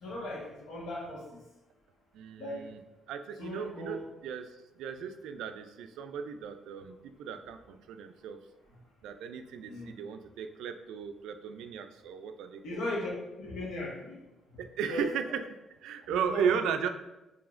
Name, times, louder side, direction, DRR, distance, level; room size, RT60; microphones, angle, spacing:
voice 1, 0.0-1.4 2.4-2.7 3.4-4.1 9.6-9.9 12.6-13.1 13.4-14.2 14.9-15.1 16.1-16.7, left 1 dB, 85° left, -3 dB, 1.2 m, -38 dB
voice 2, 2.1-2.8 3.1-4.5 4.8-8.4 9.0-12.9 14.6-16.9, right 7 dB, 85° right, 8 dB, 0.3 m, -35 dB
4.8 x 3.1 x 2.4 m, 0.98 s
cardioid pair, 90°, 0 cm